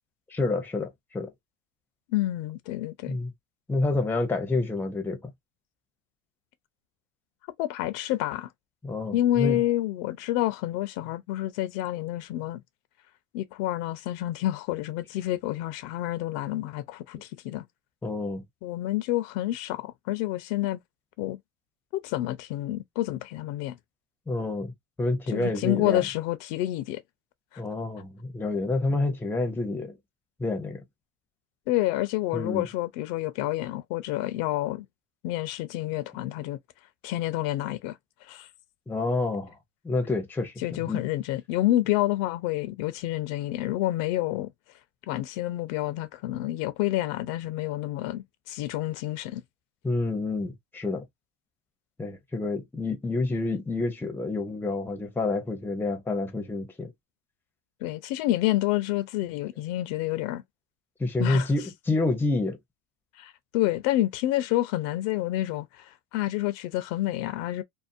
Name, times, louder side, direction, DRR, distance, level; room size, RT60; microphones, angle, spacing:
voice 1, 0.3-1.3 3.1-3.3 3.7-5.3 8.8-9.6 18.0-18.4 24.3-24.7 25.0-26.0 27.6-30.0 30.4-30.8 32.3-32.7 38.9-39.6 39.8-41.0 49.8-51.0 52.0-56.9 61.0-62.6, left 2 dB, 5° left, 0.5 m, -28 dB
voice 2, 2.1-3.2 7.6-8.5 9.1-12.6 13.3-17.7 18.6-20.8 21.2-21.4 21.9-23.8 25.3-27.0 31.7-34.9 35.2-36.6 37.0-38.5 40.6-44.5 45.1-49.4 57.8-60.4 61.2-61.5 63.2-67.6, left 15 dB, 60° left, 0.5 m, -28 dB
2.6 x 2.0 x 2.5 m
supercardioid pair, 115°, 36 cm